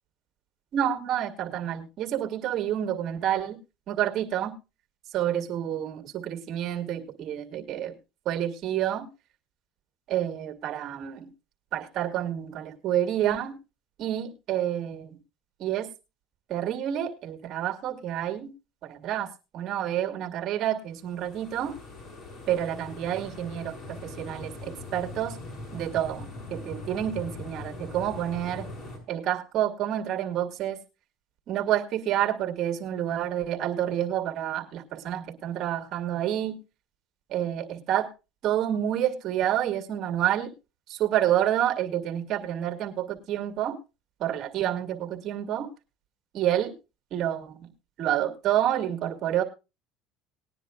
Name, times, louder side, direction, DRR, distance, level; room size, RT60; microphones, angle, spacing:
voice 1, 0.7-3.6 3.9-4.5 5.1-7.9 8.3-9.1 10.1-11.3 11.7-13.5 14.0-15.2 15.6-15.9 16.5-18.5 18.8-21.7 22.5-25.4 25.7-28.7 29.1-30.8 31.5-36.6 37.3-38.1 38.4-40.5 40.9-43.8 44.2-45.7 46.3-46.7 47.1-47.7 48.0-49.4, right 11 dB, 55° right, 6 dB, 2.2 m, -28 dB
sound 1, 21.0-29.0, left 2 dB, 40° left, 6.2 m, -41 dB
19.5 x 10.0 x 2.4 m, 0.28 s
supercardioid pair, 105°, 0 cm